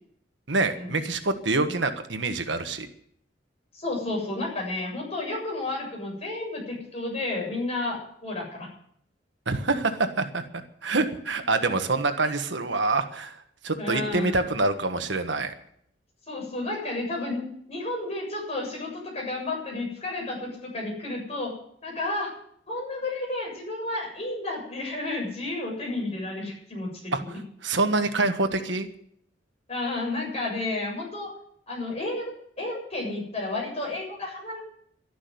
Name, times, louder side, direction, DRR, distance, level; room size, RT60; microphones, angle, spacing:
voice 1, 0.5-2.9 9.5-10.4 10.8-13.4 13.6-15.5 27.1-27.2 27.6-28.9, right 3 dB, 70° right, 8 dB, 1.4 m, -26 dB
voice 2, 3.7-8.7 13.8-14.4 16.3-21.5 21.8-22.3 22.7-27.4 29.7-31.3 31.7-34.6, left 2 dB, 35° left, -1 dB, 7.3 m, -32 dB
12.0 x 11.0 x 9.5 m, 0.67 s
head